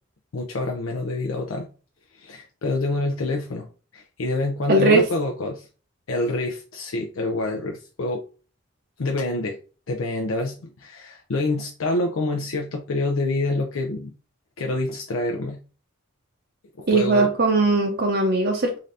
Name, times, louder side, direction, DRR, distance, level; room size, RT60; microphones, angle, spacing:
voice 1, 0.3-1.7 2.2-3.7 3.9-5.7 6.1-8.3 9.0-9.6 9.9-14.1 14.6-15.6 16.8-17.3, left 2 dB, 80° left, 2 dB, 0.6 m, -27 dB
voice 2, 4.7-5.0 16.9-18.8, right 2 dB, 50° right, 1 dB, 0.6 m, -19 dB
3.8 x 2.7 x 3.2 m, 0.35 s
head